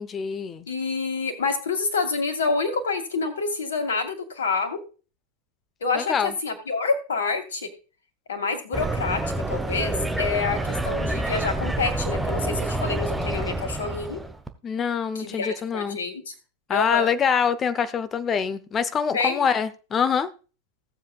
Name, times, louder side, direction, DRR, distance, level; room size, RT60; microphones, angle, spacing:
voice 1, 0.0-0.7 5.9-6.3 14.6-16.0 16.7-20.3, left 7 dB, 25° left, 14 dB, 0.8 m, -25 dB
voice 2, 0.7-4.8 5.8-7.7 8.3-14.2 15.1-16.3 16.7-17.1 19.1-19.5, left 4 dB, 65° left, 7 dB, 2.3 m, -27 dB
sound 1, 8.7-14.5, right 2 dB, 5° right, 1.1 m, -28 dB
16.5 x 7.6 x 2.4 m, 0.34 s
figure-of-eight pair, 90°, 0 cm